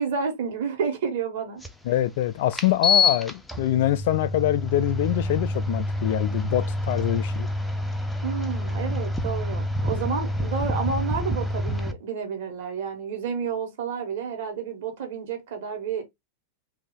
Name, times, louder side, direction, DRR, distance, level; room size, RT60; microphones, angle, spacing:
voice 1, 0.0-1.6 8.2-16.0, right 6 dB, 55° right, 1.4 m, -30 dB
sound 1, 1.6-1.7 2.5-11.9, left 2 dB, 5° left, 0.6 m, -27 dB
voice 2, 1.8-7.5, left 13 dB, 50° left, 0.4 m, -24 dB
3.1 x 2.8 x 3.7 m
figure-of-eight pair, 90°, 0 cm